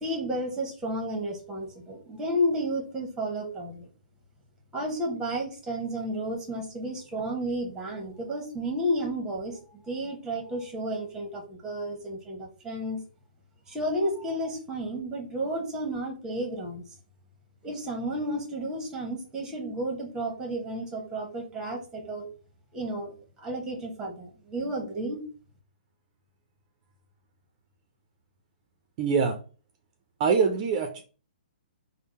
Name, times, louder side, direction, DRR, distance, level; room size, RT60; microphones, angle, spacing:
voice 1, 0.0-3.9 4.7-9.6 9.9-13.0 13.7-16.8 17.6-22.3 22.7-25.2, right 1 dB, 10° right, 3 dB, 1.0 m, -32 dB
voice 2, 29.0-29.4 30.2-31.0, right 5 dB, 35° right, 6 dB, 0.5 m, -24 dB
3.5 x 2.0 x 4.1 m, 0.37 s
hypercardioid pair, 145°, 5 cm